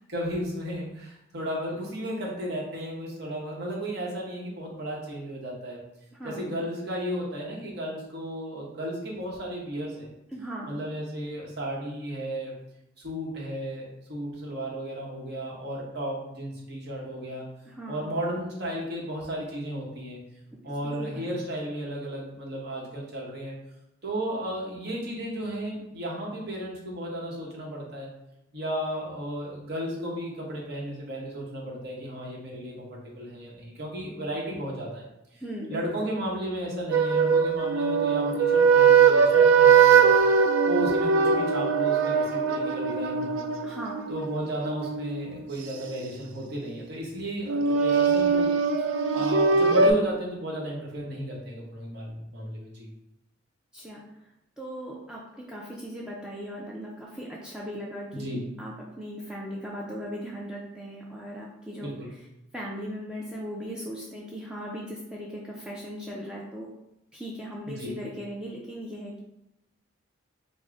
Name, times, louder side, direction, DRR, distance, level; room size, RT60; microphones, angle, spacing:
voice 1, 0.1-5.8 6.2-10.1 10.7-12.5 13.0-17.5 17.9-20.2 20.6-23.5 24.0-28.1 28.5-35.0 35.3-35.4 35.7-40.1 40.6-43.4 44.1-48.5 48.8-52.9 58.1-58.5 61.8-62.1 67.7-67.9, right 1 dB, 60° right, -3 dB, 0.9 m, -34 dB
voice 2, 6.2-6.5 10.3-10.7 17.7-18.0 20.8-21.2 35.4-35.8 43.6-44.2 53.7-54.0 54.6-61.9 62.5-66.7 67.1-69.2, equal, 5° right, -4 dB, 0.4 m, -38 dB
sound 1, 36.9-45.9 47.5-49.9, right 6 dB, 85° right, 0.4 m, -21 dB
3.5 x 2.1 x 3.6 m, 0.86 s
head